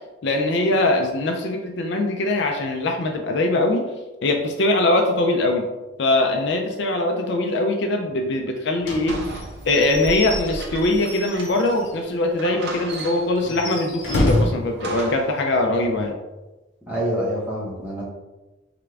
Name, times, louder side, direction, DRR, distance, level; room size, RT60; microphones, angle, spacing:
voice 1, 0.2-3.8 4.2-5.6 6.0-9.1 9.6-16.1, left 2 dB, 60° left, 3 dB, 0.5 m, -22 dB
Slam / Squeak / Wood, 8.8-12.0 12.4-12.5 12.8-12.9 13.4-14.7, left 1 dB, 80° left, 1.0 m, -27 dB
sound 1, 9.1-11.8 12.1-12.2 12.4-13.5 14.1-15.4, right 2 dB, 55° right, 0.7 m, -36 dB
voice 2, 16.9-18.0, equal, 10° right, -8 dB, 1.4 m, -26 dB
3.7 x 3.4 x 3.3 m, 1.1 s
head